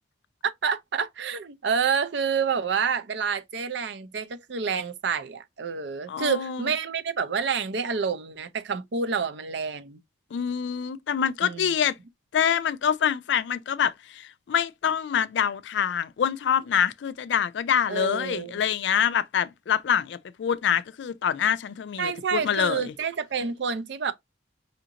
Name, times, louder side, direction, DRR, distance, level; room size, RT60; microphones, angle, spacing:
voice 1, 0.6-10.0 11.4-11.8 17.9-18.6 22.0-24.1, right 6 dB, 65° right, 0.5 m, -28 dB
voice 2, 6.1-6.7 10.3-12.0 12.3-22.9, left 8 dB, 65° left, 0.3 m, -26 dB
4.9 x 2.5 x 2.8 m
head